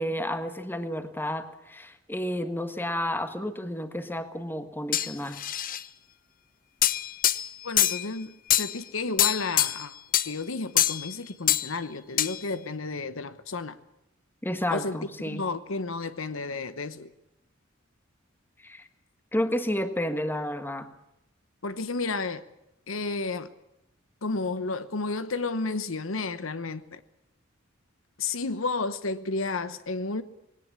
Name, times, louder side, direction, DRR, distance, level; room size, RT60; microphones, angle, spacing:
voice 1, 0.0-5.4 14.4-15.4 18.6-18.9 19.3-20.9, equal, 10° left, 1.5 m, -31 dB
sound 1, 4.9-5.8 6.8-8.0 8.5-8.8 9.2-9.8 10.1-10.3 10.8-11.1 11.5-11.7 12.2-12.4, left 12 dB, 40° left, 0.8 m, -24 dB
voice 2, 7.6-10.0 10.2-13.8 14.7-17.1 21.6-22.4 22.9-23.5 24.2-27.0 28.2-30.2, left 3 dB, 70° left, 1.0 m, -32 dB
20.5 x 18.0 x 8.5 m
head